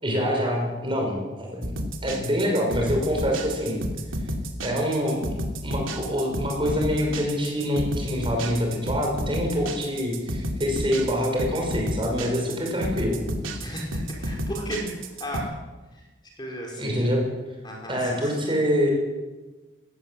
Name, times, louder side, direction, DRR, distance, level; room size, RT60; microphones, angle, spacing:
voice 1, 0.0-1.7 2.0-3.8 4.6-13.2 16.7-17.3 17.9-18.9, equal, 25° right, 1 dB, 6.0 m, -25 dB
sound 1, 1.6-15.4, equal, 85° right, 2.8 m, -31 dB
voice 2, 13.6-14.9 15.2-15.5 15.9-16.0 16.4-17.2 17.6-18.3, equal, 20° left, -1 dB, 4.8 m, -34 dB
19.5 x 17.5 x 7.9 m, 1.2 s
head